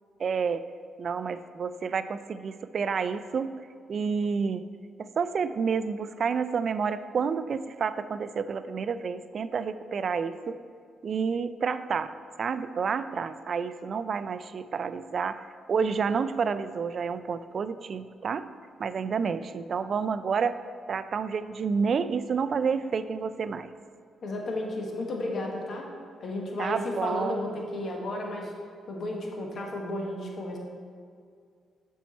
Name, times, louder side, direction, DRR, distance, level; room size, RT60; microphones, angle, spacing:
voice 1, 0.2-0.6 1.0-3.5 3.9-4.6 5.0-10.6 11.0-12.1 12.4-18.5 18.8-20.6 20.9-23.7 26.6-27.4, right 5 dB, 55° right, 13 dB, 0.3 m, -29 dB
voice 2, 24.2-25.9 26.2-28.5 28.9-30.6, left 1 dB, 60° left, 0 dB, 1.3 m, -33 dB
7.1 x 4.6 x 4.2 m, 2.2 s
supercardioid pair, 65°, 0 cm